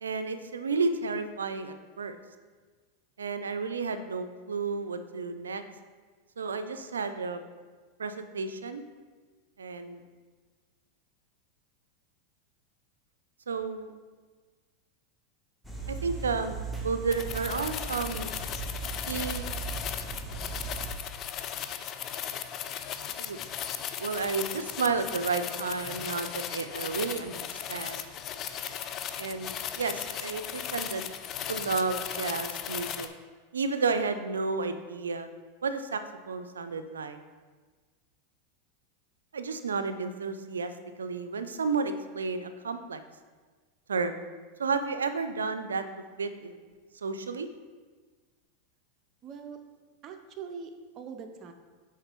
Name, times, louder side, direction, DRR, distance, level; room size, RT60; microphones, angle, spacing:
voice 1, 0.0-2.2 3.2-5.6 6.4-7.4 8.0-8.8 9.6-10.0 13.5-13.9 15.9-18.3 19.1-19.5 23.2-23.4 24.0-28.1 29.2-31.1 31.5-33.1 33.5-35.3 35.6-36.0 36.3-37.2 39.3-40.7 41.0-43.0 43.9-44.2 44.6-45.8 46.2-46.6 47.0-47.5, right 4 dB, 85° right, 10 dB, 0.4 m, -32 dB
sound 1, 15.6-20.9, right 3 dB, ahead, 1.0 m, -38 dB
sound 2, 17.1-33.1, left 9 dB, 40° left, 0.4 m, -37 dB
voice 2, 49.2-49.6 50.0-51.5, right 6 dB, 40° right, 5 dB, 0.6 m, -42 dB
6.5 x 4.7 x 3.0 m, 1.4 s
hypercardioid pair, 95°, 0 cm